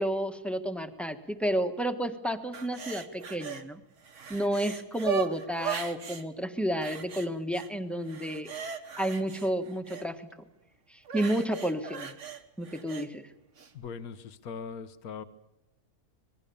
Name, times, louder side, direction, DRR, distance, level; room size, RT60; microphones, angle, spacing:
voice 1, 0.0-3.8 4.3-8.5 9.0-10.2 11.1-12.1 12.6-13.2, equal, ahead, 7 dB, 1.3 m, -31 dB
sound 1, 2.5-3.6 4.0-6.2 6.8-7.7 8.0-10.1 11.1-13.1 13.6-13.7, right 8 dB, 50° right, 1.6 m, -38 dB
voice 2, 13.7-15.2, left 6 dB, 70° left, 11 dB, 1.6 m, -40 dB
26.0 x 20.5 x 7.1 m, 0.91 s
omnidirectional pair, 1.6 m